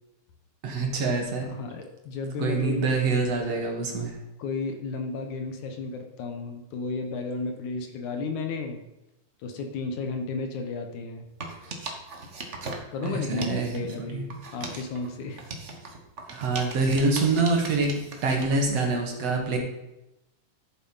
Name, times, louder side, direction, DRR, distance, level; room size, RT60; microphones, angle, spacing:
voice 1, 0.6-1.5 2.4-4.1 13.0-14.2 16.3-17.9 18.2-19.6, right 3 dB, 55° right, 1 dB, 2.6 m, -25 dB
voice 2, 1.4-2.9 4.4-8.8 9.4-11.3 12.9-14.3 14.5-15.4, left 4 dB, 70° left, 5 dB, 2.5 m, -33 dB
sound 1, 11.3-14.0 14.3-18.6, right 3 dB, 75° right, 0.6 m, -39 dB
12.5 x 7.2 x 5.6 m, 0.94 s
omnidirectional pair, 3.7 m